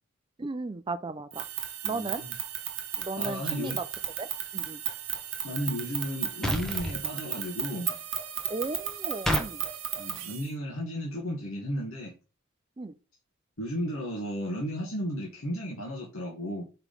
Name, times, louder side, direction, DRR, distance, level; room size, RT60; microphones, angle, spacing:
voice 1, 0.4-1.4 1.8-2.2 3.0-3.8 4.2-4.8 8.5-9.6 12.8-12.9, right 3 dB, 25° right, 0.4 m, -35 dB
sound 1, 1.3-10.5, right 11 dB, 60° right, 1.1 m, -35 dB
voice 2, 1.9-2.3 3.2-3.8 5.4-8.0 9.9-12.1 13.6-16.6, equal, 90° left, 1.4 m, -34 dB
sound 2, 6.4-7.0 9.3-9.5, equal, ahead, 0.9 m, -28 dB
4.6 x 3.9 x 5.2 m
head